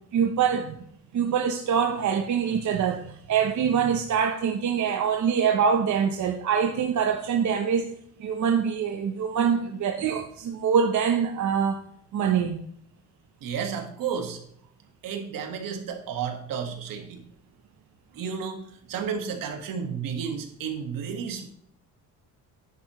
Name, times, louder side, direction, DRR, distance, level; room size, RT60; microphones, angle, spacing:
voice 1, 0.1-0.7 1.1-7.9 8.2-11.8 12.1-12.6, right 7 dB, 55° right, 0.9 m, -24 dB
voice 2, 13.4-14.4 15.0-17.2 18.1-21.5, right 7 dB, 75° right, 1.8 m, -32 dB
10.5 x 8.3 x 3.1 m
cardioid pair, 150°, 34 cm